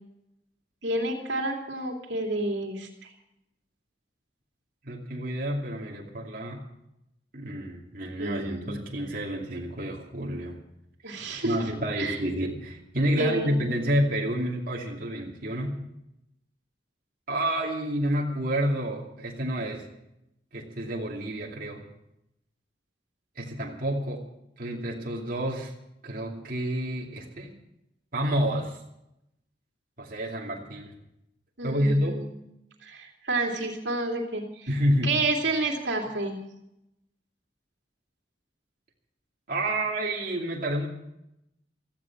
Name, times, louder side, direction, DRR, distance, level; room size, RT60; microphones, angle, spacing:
voice 1, 0.8-3.1 8.2-8.8 11.0-11.5 12.0-12.2 13.2-13.5 31.6-32.3 32.8-34.7 35.0-36.4, right 2 dB, 80° right, 1 dB, 2.8 m, -30 dB
voice 2, 4.8-6.6 7.3-10.6 11.0-15.8 17.3-19.9 20.5-21.8 23.4-24.2 24.6-25.7 26.0-27.5 28.1-28.8 30.0-30.9 31.6-32.2 34.7-35.2 39.5-40.9, equal, 50° right, -2 dB, 2.5 m, -29 dB
17.0 x 14.0 x 6.0 m, 0.85 s
head